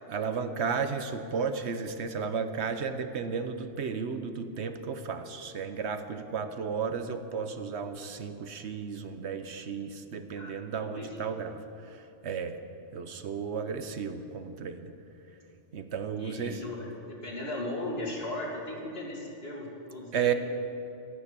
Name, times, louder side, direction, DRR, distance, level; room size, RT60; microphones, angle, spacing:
voice 1, 0.1-12.6 12.9-14.9 15.7-16.6 20.1-20.3, right 6 dB, 65° right, 8 dB, 1.1 m, -33 dB
voice 2, 10.4-11.1 16.2-20.3, left 1 dB, 55° left, -2 dB, 2.9 m, -37 dB
13.5 x 11.5 x 8.3 m, 2.9 s
omnidirectional pair, 1.2 m